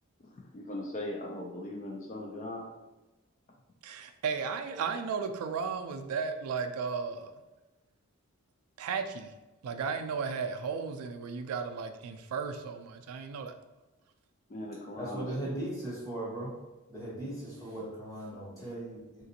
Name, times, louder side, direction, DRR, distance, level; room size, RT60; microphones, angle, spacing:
voice 1, 0.2-2.7 4.7-4.8 14.5-15.5, left 1 dB, 35° left, -1 dB, 0.3 m, -39 dB
voice 2, 3.8-7.3 8.8-9.3 9.6-13.5, right 5 dB, 80° right, 7 dB, 0.3 m, -34 dB
voice 3, 15.0-16.5 16.9-19.3, right 1 dB, 15° left, -6 dB, 1.1 m, -38 dB
3.7 x 2.5 x 2.7 m, 1.1 s
head